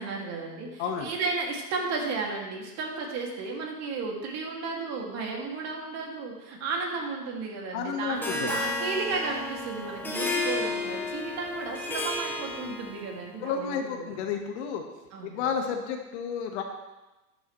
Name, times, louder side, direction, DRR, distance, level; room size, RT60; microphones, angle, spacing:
voice 1, 0.0-14.2 15.1-15.4, right 4 dB, 35° right, 0 dB, 2.5 m, -33 dB
voice 2, 0.8-1.1 7.7-8.5 13.4-14.8 15.2-16.6, left 6 dB, 45° left, 3 dB, 1.6 m, -31 dB
Harp, 8.2-13.2, left 2 dB, 5° left, 1.2 m, -32 dB
12.0 x 11.0 x 3.2 m, 1.1 s
hypercardioid pair, 125°, 47 cm